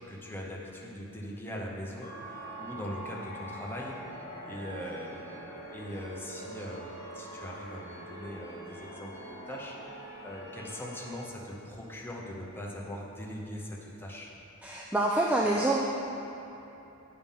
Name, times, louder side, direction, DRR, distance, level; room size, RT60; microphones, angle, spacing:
voice 1, 0.1-2.1 2.6-4.0 4.4-5.4 5.7-9.8 10.2-14.3, equal, 10° left, -3 dB, 0.8 m, -41 dB
sound 1, 2.0-11.1, right 1 dB, 35° left, 1.5 m, -44 dB
voice 2, 14.6-15.8, right 2 dB, 5° right, -3 dB, 0.3 m, -26 dB
8.8 x 5.6 x 3.6 m, 3.0 s
head